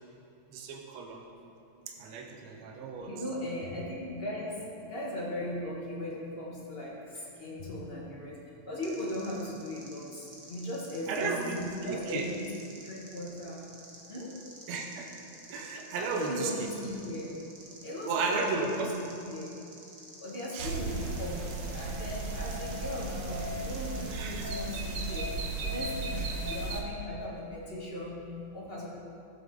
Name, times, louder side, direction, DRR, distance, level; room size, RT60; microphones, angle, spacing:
voice 1, 0.5-1.2 2.0-3.2 11.1-12.3 14.7-15.1 15.5-16.7 18.1-18.9 20.5-20.7 24.1-24.4, right 4 dB, 70° right, 2 dB, 2.2 m, -34 dB
voice 2, 3.0-11.3 11.8-12.5 12.8-13.7 14.1-14.3 15.3-15.4 16.0-17.4 17.8-19.6 20.2-28.9, left 1 dB, 25° left, -5 dB, 1.4 m, -38 dB
sound 1, 8.8-25.2, right 2 dB, 45° right, 1.2 m, -51 dB
sound 2, 20.6-26.8, right 2 dB, 90° right, 0.9 m, -35 dB
16.0 x 7.7 x 3.8 m, 2.7 s
omnidirectional pair, 3.4 m